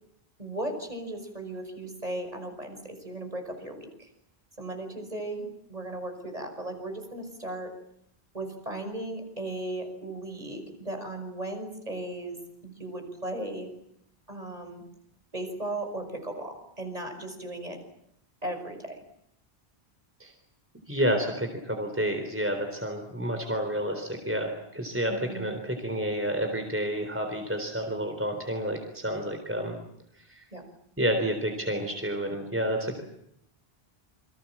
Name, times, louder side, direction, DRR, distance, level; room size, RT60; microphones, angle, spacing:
voice 1, 0.4-4.1 4.6-7.7 8.3-12.4 12.6-13.7 14.3-14.8 15.3-17.8 18.4-19.0 25.1-25.5 30.5-30.6, right 1 dB, 40° right, 5 dB, 5.9 m, -36 dB
voice 2, 20.9-29.7 30.3-30.4 31.0-33.0, right 1 dB, 10° right, 4 dB, 4.0 m, -30 dB
28.5 x 24.5 x 7.5 m, 0.72 s
omnidirectional pair, 1.1 m